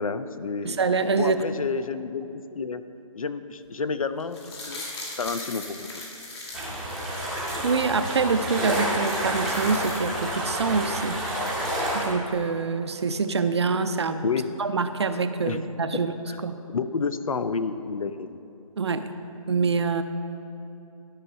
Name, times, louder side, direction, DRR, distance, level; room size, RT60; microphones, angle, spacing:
voice 1, 0.0-0.8 1.2-2.8 3.1-4.4 4.6-4.8 5.2-6.1 14.2-14.5 15.5-15.6 15.9-16.0 16.3-16.4 16.7-18.4, left 5 dB, 70° left, 12 dB, 0.5 m, -30 dB
voice 2, 0.6-1.4 7.6-11.2 11.9-14.2 14.6-16.1 16.4-16.6 18.8-19.1 19.5-20.0, right 4 dB, 50° right, 10 dB, 0.5 m, -25 dB
sound 1, 4.2-7.9 8.3-8.4 8.6-10.5 10.8-10.9, left 2 dB, 45° left, 2.3 m, -40 dB
sound 2, 6.5-12.1, right 1 dB, ahead, 0.8 m, -29 dB
12.0 x 5.7 x 5.4 m, 3.0 s
figure-of-eight pair, 160°, 19 cm